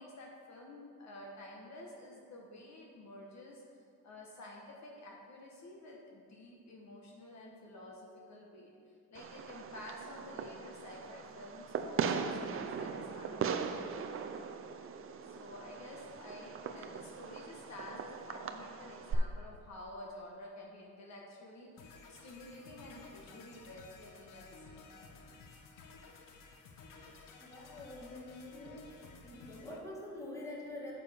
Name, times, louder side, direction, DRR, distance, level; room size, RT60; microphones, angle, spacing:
voice 1, 0.0-3.6 4.0-8.7 9.1-14.2 15.2-25.2, left 1 dB, 55° left, -1 dB, 1.2 m, -51 dB
Fireworks, 9.1-19.1, right 6 dB, 40° right, 0.5 m, -39 dB
sound 1, 21.8-29.8, left 4 dB, 75° left, 1.0 m, -55 dB
voice 2, 27.4-28.9 29.1-30.9, left 1 dB, 10° left, -4 dB, 1.8 m, -46 dB
8.9 x 7.1 x 3.5 m, 2.3 s
cardioid pair, 105°, 33 cm